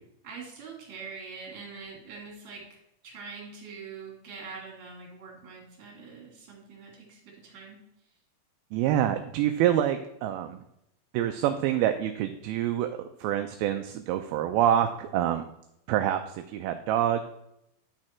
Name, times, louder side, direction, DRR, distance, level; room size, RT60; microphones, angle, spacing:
voice 1, 0.2-2.6 3.0-7.8, right 5 dB, 45° right, -1 dB, 3.4 m, -44 dB
voice 2, 8.7-10.6 11.1-12.9 13.2-15.4 15.9-16.2 16.5-17.2, right 11 dB, 80° right, 7 dB, 2.3 m, -26 dB
11.0 x 6.2 x 4.4 m, 0.80 s
omnidirectional pair, 4.5 m